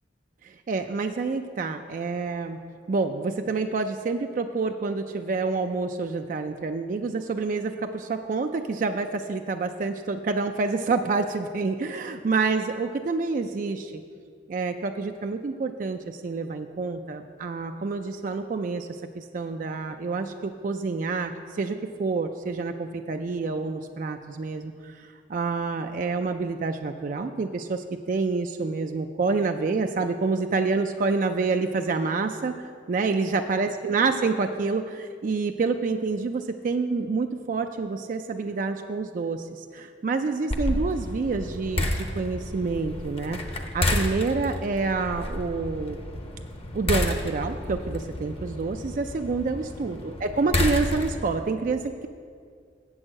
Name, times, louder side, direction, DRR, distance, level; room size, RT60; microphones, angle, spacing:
voice 1, 0.4-2.6 2.9-14.0 14.5-18.9 19.1-46.0 46.7-52.1, right 4 dB, 45° right, 6 dB, 0.4 m, -28 dB
sound 1, 40.5-51.4, left 1 dB, 35° left, 0.8 m, -30 dB
8.0 x 6.3 x 7.5 m, 2.2 s
head